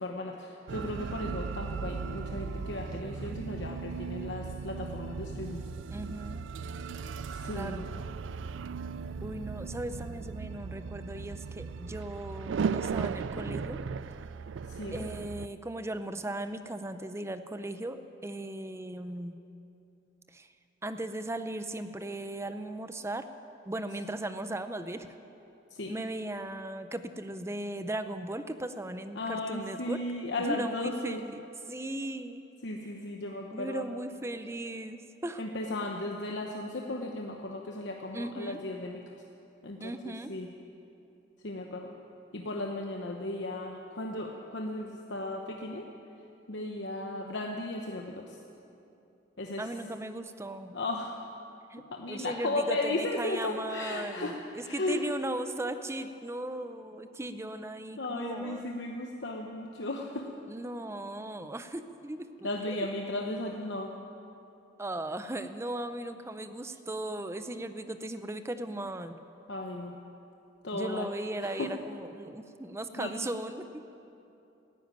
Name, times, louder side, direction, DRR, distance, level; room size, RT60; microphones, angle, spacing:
voice 1, 0.0-5.6 7.3-7.9 14.7-15.1 25.7-25.9 29.1-31.3 32.6-33.9 35.4-39.0 39.6-40.5 41.4-41.9 42.3-45.9 46.5-48.4 49.4-49.7 50.7-51.1 51.9-54.4 54.6-55.0 58.0-60.3 62.4-63.9 69.5-70.0 70.6-71.1 71.4-71.7 73.0-73.1, left 2 dB, 65° left, 1 dB, 0.9 m, -35 dB
sound 1, 0.7-15.5, right 5 dB, 80° right, 0.4 m, -37 dB
voice 2, 5.9-6.4 7.5-7.9 9.2-13.8 14.9-19.4 20.3-20.5 20.8-23.3 23.7-25.1 25.9-30.0 30.5-31.4 31.7-32.4 33.5-35.4 38.1-38.6 39.8-40.3 49.6-50.8 51.7-58.7 60.5-62.5 64.8-69.2 70.7-73.8, right 1 dB, 15° right, 10 dB, 0.5 m, -37 dB
14.0 x 10.5 x 9.1 m, 2.8 s
head